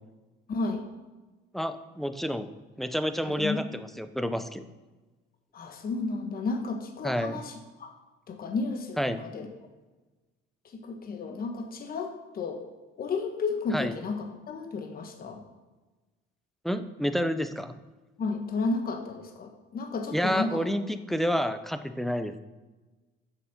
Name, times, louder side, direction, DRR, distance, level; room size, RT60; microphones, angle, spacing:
voice 1, 0.5-0.9 3.3-3.6 5.5-7.9 8.3-9.5 10.6-12.6 13.0-15.4 18.2-20.6, left 4 dB, 50° left, 4 dB, 1.2 m, -32 dB
voice 2, 1.5-2.5 2.8-4.6 7.0-7.4 9.0-9.2 13.7-13.9 16.6-17.7 20.1-22.4, equal, ahead, 10 dB, 0.6 m, -29 dB
7.2 x 6.9 x 5.9 m, 1.2 s
cardioid pair, 90°, 20 cm